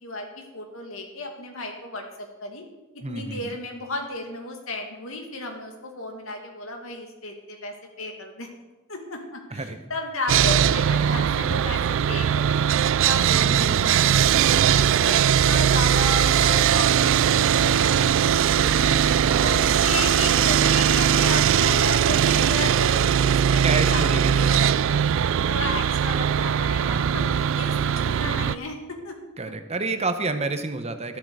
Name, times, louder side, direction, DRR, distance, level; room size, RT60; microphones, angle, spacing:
voice 1, 0.0-2.6 3.1-8.5 8.9-12.6 13.0-19.0 19.4-23.1 23.5-25.2 25.5-29.2 29.4-29.5, left 2 dB, 75° left, 3 dB, 2.3 m, -34 dB
voice 2, 3.0-3.5 9.5-9.8 13.3-14.0 19.2-19.9 23.6-24.7 26.7-27.2 29.4-31.2, right 3 dB, 30° right, 8 dB, 0.9 m, -30 dB
Sawing, 10.3-28.6, right 8 dB, 65° right, 0.3 m, -20 dB
13.0 x 11.5 x 4.9 m, 1.1 s
head